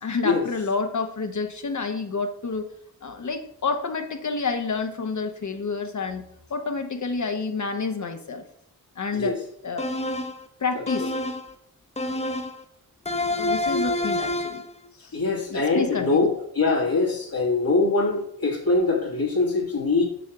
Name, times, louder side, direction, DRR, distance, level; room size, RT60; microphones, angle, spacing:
voice 1, 0.0-2.7 3.0-8.5 9.0-9.4 9.6-9.9 10.6-11.2 13.4-14.6 15.0-15.2 15.5-16.3, left 4 dB, 55° left, 6 dB, 0.8 m, -29 dB
sound 1, 9.8-10.4 10.9-11.5 12.0-12.6 13.1-14.7, left 2 dB, 20° left, 0.7 m, -27 dB
voice 2, 15.1-20.0, left 3 dB, 75° left, -3 dB, 1.7 m, -23 dB
7.1 x 3.5 x 5.8 m, 0.71 s
cardioid pair, 45°, 36 cm